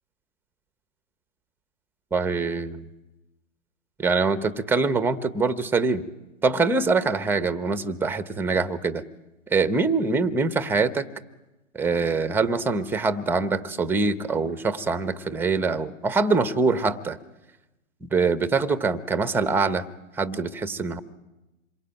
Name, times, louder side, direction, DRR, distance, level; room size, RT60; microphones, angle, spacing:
voice 1, 2.1-2.9 4.0-6.0 6.4-9.0 9.5-11.1 11.7-17.2 18.0-19.9 20.2-21.0, right 4 dB, 5° right, 12 dB, 1.0 m, -24 dB
27.0 x 22.5 x 9.1 m, 1.0 s
hypercardioid pair, 130°, 40 cm